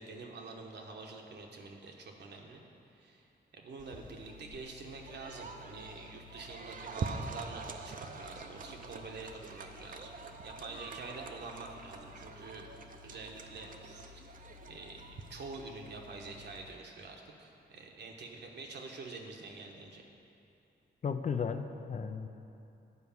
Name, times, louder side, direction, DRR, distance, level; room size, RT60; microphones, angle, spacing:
voice 1, 0.0-2.6 3.0-3.3 3.5-10.1 10.4-12.7 13.0-14.2 14.7-20.0, right 3 dB, 75° right, 1 dB, 1.1 m, -46 dB
sound 1, 3.8-16.7, right 3 dB, 50° right, 0.6 m, -45 dB
voice 2, 21.0-22.3, left 6 dB, 45° left, 8 dB, 0.5 m, -34 dB
9.7 x 4.8 x 7.0 m, 2.8 s
cardioid pair, 90°, 18 cm